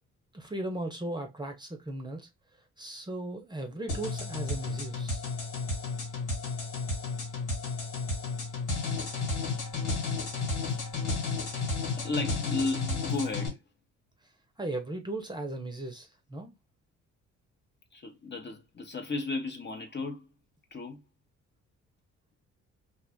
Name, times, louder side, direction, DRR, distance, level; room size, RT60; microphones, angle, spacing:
voice 1, 0.3-2.3 2.8-5.2 14.6-16.5, right 2 dB, 15° right, 0.7 m, -37 dB
sound 1, 3.9-13.5, left 3 dB, 85° left, 1.7 m, -32 dB
voice 2, 11.5-13.6 17.9-20.3 20.7-21.0, left 3 dB, 35° left, 0.8 m, -34 dB
2.5 x 2.4 x 3.4 m
cardioid pair, 90°, 30 cm